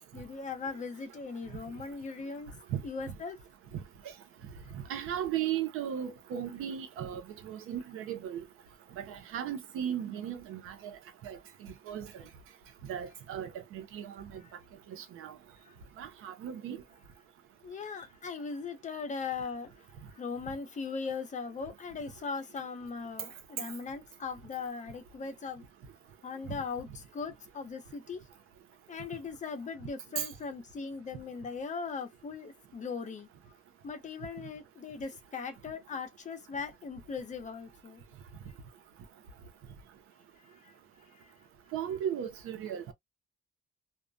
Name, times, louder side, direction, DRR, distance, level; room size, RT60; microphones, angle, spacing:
voice 1, 0.1-2.5 2.8-3.4 15.6-15.7 17.6-19.9 20.1-25.6 26.2-28.2 28.9-33.3 33.8-38.0 40.4-40.7 41.0-41.3, left 5 dB, 35° left, 0.6 m, -39 dB
voice 2, 4.9-8.4 8.9-10.9 11.2-11.4 11.9-12.2 12.9-14.4 14.9-15.3 16.0-16.8 30.2-30.3 41.7-42.9, right 9 dB, 85° right, 0.6 m, -36 dB
2.3 x 2.1 x 2.5 m
cardioid pair, 125°, 21 cm